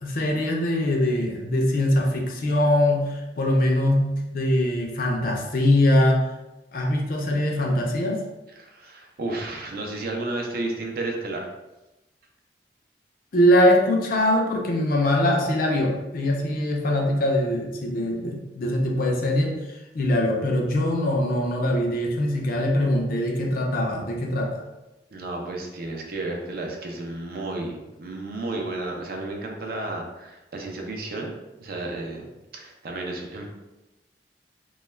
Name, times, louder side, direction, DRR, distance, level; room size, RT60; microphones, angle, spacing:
voice 1, 0.0-6.3 6.7-8.2 13.3-24.6, left 1 dB, 55° left, 0 dB, 0.5 m, -22 dB
voice 2, 8.6-11.5 25.1-32.2 32.5-33.5, right 2 dB, 55° right, 1 dB, 0.5 m, -32 dB
2.3 x 2.1 x 3.1 m, 1.0 s
head